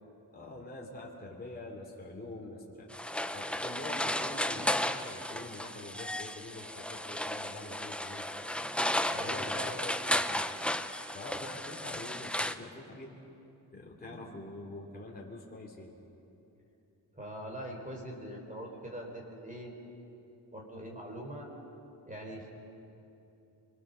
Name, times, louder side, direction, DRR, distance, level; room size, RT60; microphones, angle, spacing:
voice 1, 0.3-2.9 3.3-8.3 9.2-10.4 11.1-13.2 13.7-15.9, left 2 dB, 20° left, -2 dB, 2.9 m, -45 dB
sound 1, 2.9-12.5, left 1 dB, 5° left, 0.6 m, -34 dB
voice 2, 9.1-9.6 14.1-14.5 17.1-19.7 20.5-21.5 22.1-22.5, equal, 20° right, 0 dB, 3.8 m, -43 dB
25.5 x 24.5 x 6.8 m, 2.9 s
wide cardioid pair, 155°, 43 cm